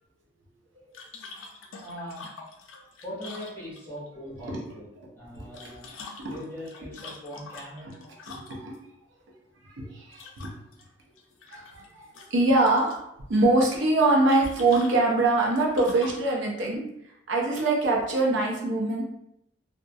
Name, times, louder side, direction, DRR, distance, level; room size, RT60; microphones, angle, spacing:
sound 1, 0.9-4.1 5.4-8.8 10.1-10.8 11.2-11.9 12.1-13.0 14.3-16.3, left 4 dB, 85° left, 0.4 m, -44 dB
voice 1, 1.8-2.3 3.0-8.0, equal, 10° left, -7 dB, 0.8 m, -41 dB
voice 2, 8.3-8.7 9.6-10.5 11.5-13.0 13.3-16.8 17.3-19.0, right 2 dB, 75° right, -2 dB, 0.5 m, -24 dB
2.2 x 2.1 x 2.6 m, 0.80 s
head